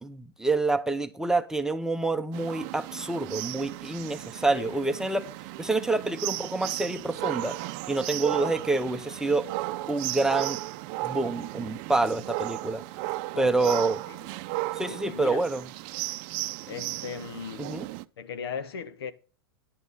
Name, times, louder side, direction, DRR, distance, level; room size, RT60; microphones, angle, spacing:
voice 1, 0.0-5.3 5.6-7.6 7.9-9.5 9.9-10.6 11.0-12.8 13.4-14.0 14.8-15.6 17.6-17.9, right 3 dB, 5° right, 0.8 m, -27 dB
sound 1, 2.3-18.0, right 18 dB, 50° right, 0.6 m, -35 dB
voice 2, 13.3-13.8 14.1-14.2 14.8-15.4 16.7-17.7 18.2-19.1, left 6 dB, 85° left, 1.2 m, -37 dB
10.5 x 6.0 x 5.5 m
supercardioid pair, 135°, 13 cm